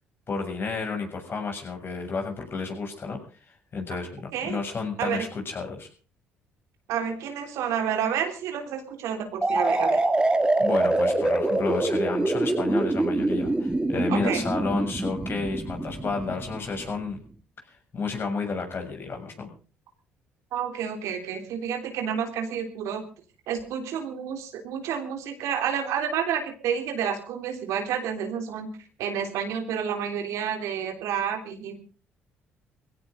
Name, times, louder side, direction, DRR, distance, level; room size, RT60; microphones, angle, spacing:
voice 1, 0.3-5.9 10.6-17.2 17.7-19.5, left 4 dB, 45° left, 3 dB, 7.0 m, -31 dB
voice 2, 6.9-10.0 14.1-14.4 20.5-23.0 23.5-28.7 29.0-31.8, right 8 dB, 75° right, 5 dB, 3.4 m, -30 dB
sound 1, 9.4-17.1, right 2 dB, 15° right, 2.4 m, -25 dB
20.5 x 16.5 x 3.8 m, 0.39 s
hypercardioid pair, 60°, 5 cm